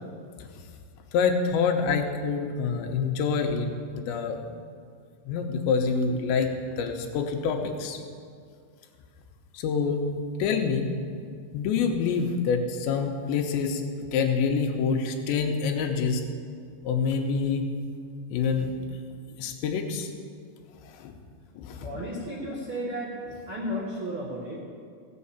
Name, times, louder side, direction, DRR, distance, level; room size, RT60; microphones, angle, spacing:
voice 1, 1.1-4.6 5.3-8.0 9.5-10.9 11.5-13.8 14.1-16.2 16.8-17.6 18.3-18.7 19.4-20.1 21.0-21.1 21.6-21.9, left 5 dB, 80° left, 3 dB, 3.1 m, -26 dB
voice 2, 21.8-23.1 23.5-24.6, equal, 90° right, -4 dB, 1.1 m, -33 dB
16.0 x 7.6 x 7.1 m, 2.2 s
omnidirectional pair, 5.2 m